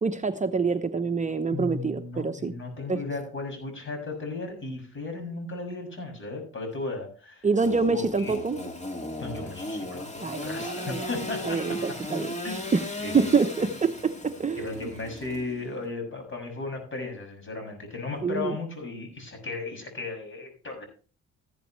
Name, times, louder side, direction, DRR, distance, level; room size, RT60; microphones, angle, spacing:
voice 1, 0.0-2.5 2.9-3.0 7.4-8.6 10.2-11.1 11.4-12.8 13.1-14.7 18.2-18.6, right 4 dB, 25° right, 7 dB, 0.9 m, -26 dB
voice 2, 1.5-7.5 7.9-8.4 9.1-11.8 12.4-12.7 13.0-13.7 14.6-20.8, left 3 dB, 40° left, 4 dB, 6.8 m, -35 dB
Engine / Sawing, 7.6-15.9, left 1 dB, 25° left, 2.3 m, -36 dB
14.5 x 11.0 x 3.2 m, 0.36 s
cardioid pair, 90°, 30 cm